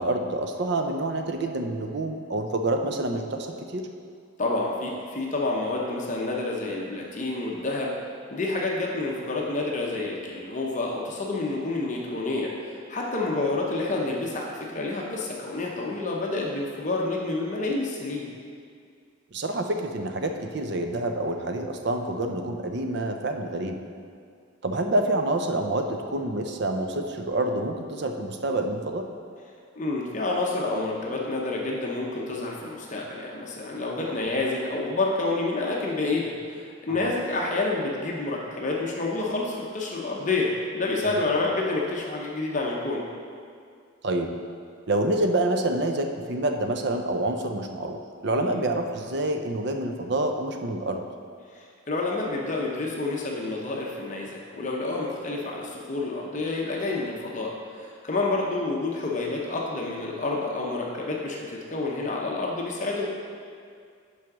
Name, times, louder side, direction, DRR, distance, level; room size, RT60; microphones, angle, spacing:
voice 1, 0.0-3.9 19.3-23.8 24.6-29.1 36.9-37.2 41.0-41.2 44.0-44.3 44.9-51.0, right 2 dB, 55° right, 5 dB, 0.5 m, -27 dB
voice 2, 4.4-7.9 8.3-18.3 29.8-36.6 36.8-43.1 48.4-48.6 51.5-63.0, left 2 dB, 35° left, -2 dB, 0.7 m, -29 dB
6.1 x 4.8 x 6.0 m, 2.2 s
head